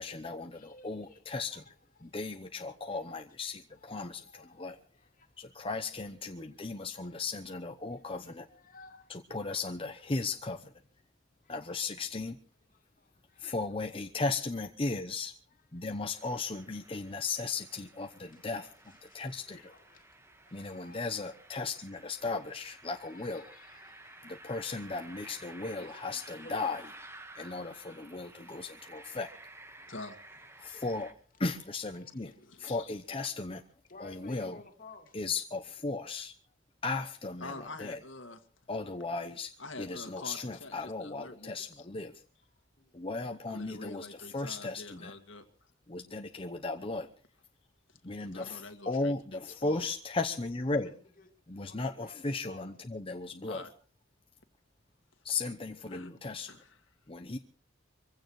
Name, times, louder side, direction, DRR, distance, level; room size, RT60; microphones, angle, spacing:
voice 1, 0.0-1.6 2.0-4.8 5.4-8.5 9.1-10.7 11.5-12.4 13.4-15.3 15.7-18.7 19.0-19.7 20.5-23.4 24.2-26.8 27.4-29.3 30.6-31.1 31.4-32.3 32.6-33.6 34.0-34.6 35.1-36.3 36.8-38.0 38.7-39.5 39.8-42.1 42.9-45.1 45.9-47.1 48.0-51.0 51.5-53.6 55.2-56.5 57.1-57.4, left 3 dB, 30° left, 0.9 m, -36 dB
voice 2, 0.5-1.2 1.5-1.7 2.0-2.1 2.6-3.0 3.8-5.3 6.5-6.7 6.9-7.2 7.9-8.1 8.5-9.1 9.5-9.6 11.4-11.9 12.7-13.5 15.7-15.8 18.3-18.4 19.1-20.1 20.5-21.1 23.0-24.3 25.7-26.7 27.3-27.4 28.4-29.0 31.9-32.1 33.9-35.2 42.8-42.9 50.7-50.9 51.2-51.3 51.6-52.2 52.5-52.7, left 3 dB, 45° left, 2.3 m, -56 dB
sound 1, 16.1-31.1, right 2 dB, 15° right, 1.4 m, -53 dB
voice 3, 32.4-32.9 37.4-38.4 39.6-41.9 43.5-45.4 48.2-49.9 53.5-53.7 55.9-56.1 56.5-56.8, left 2 dB, 85° left, 1.9 m, -46 dB
24.0 x 16.0 x 3.2 m
head